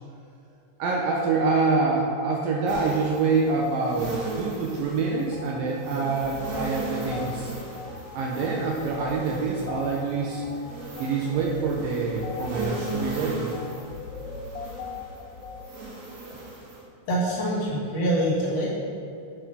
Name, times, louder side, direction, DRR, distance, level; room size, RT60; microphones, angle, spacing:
voice 1, 0.8-7.5 8.1-10.4 11.0-13.4, right 4 dB, 80° right, -1 dB, 2.2 m, -26 dB
sound 1, 2.7-16.8, right 2 dB, 60° right, 3.0 m, -37 dB
sound 2, 5.3-5.5 6.0-15.7, left 4 dB, 80° left, 2.6 m, -40 dB
voice 2, 17.1-18.7, right 1 dB, 55° left, -6 dB, 1.9 m, -25 dB
6.5 x 5.8 x 5.5 m, 2.6 s
omnidirectional pair, 4.6 m